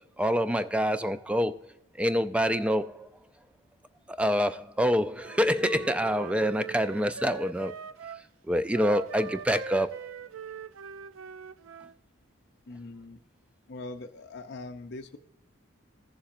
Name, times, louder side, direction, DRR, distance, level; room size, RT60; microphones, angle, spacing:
voice 1, 0.2-1.6 2.0-3.1 4.1-7.7 8.5-10.0, equal, 5° right, 0.3 m, -26 dB
Wind instrument woodwind instrument, 5.1-8.2 8.7-12.0, right 6 dB, 80° right, 0.4 m, -41 dB
voice 2, 12.7-13.2 13.7-15.2, left 2 dB, 55° left, 0.5 m, -41 dB
15.0 x 7.0 x 2.5 m
head